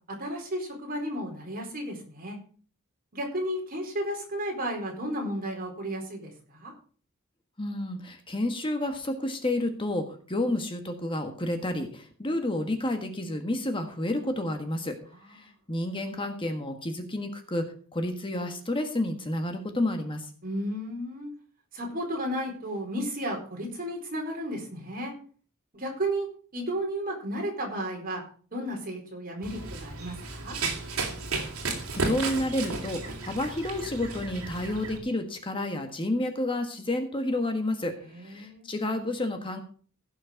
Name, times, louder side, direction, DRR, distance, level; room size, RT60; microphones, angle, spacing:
voice 1, 0.1-2.4 3.1-6.7 15.4-15.5 20.4-21.3 21.7-25.1 25.7-28.2 28.5-30.6 38.1-38.7, equal, 45° right, 1 dB, 4.3 m, -33 dB
voice 2, 7.6-14.9 15.3-20.3 31.9-39.6, left 1 dB, 25° left, 5 dB, 1.5 m, -30 dB
Run, 29.4-35.0, right 3 dB, 70° right, 2.9 m, -33 dB
16.5 x 6.5 x 5.2 m, 0.42 s
head